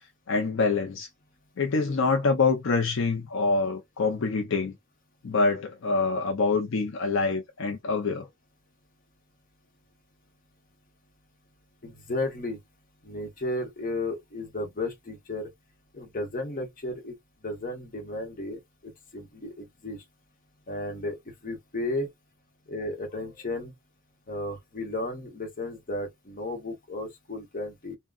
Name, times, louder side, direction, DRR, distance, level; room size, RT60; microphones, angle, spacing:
voice 1, 0.3-1.1 1.6-4.7 5.2-8.3, left 4 dB, 65° left, 0.5 m, -25 dB
voice 2, 11.8-12.6 13.0-15.5 15.9-17.2 17.4-20.0 20.7-21.2 21.4-22.1 22.7-23.7 24.3-28.0, left 2 dB, 40° left, 0.9 m, -34 dB
3.6 x 2.2 x 2.3 m
head